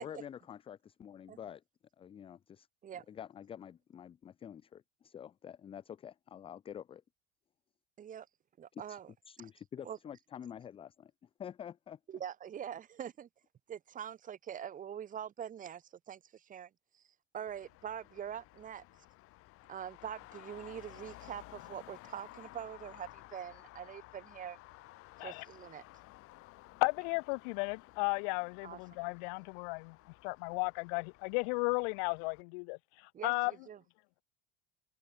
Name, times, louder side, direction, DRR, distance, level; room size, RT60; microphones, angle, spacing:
voice 1, 0.0-1.6 2.0-2.7 3.1-7.0 8.7-9.0 9.3-11.1 11.4-12.0, left 9 dB, 20° left, 0.5 m, -48 dB
voice 2, 8.6-9.1 9.4-9.5 9.8-10.0 12.1-13.3 13.7-17.0 17.3-18.8 19.7-24.6 25.2-25.8 28.6-29.0 33.1-33.8, right 9 dB, 25° right, 1.9 m, -44 dB
Traffic noise roadway noise, 17.5-32.4, left 19 dB, 50° left, 2.9 m, -55 dB
voice 3, 26.8-30.0 30.2-33.5, left 38 dB, 65° left, 1.0 m, -34 dB
supercardioid pair, 145°, 29 cm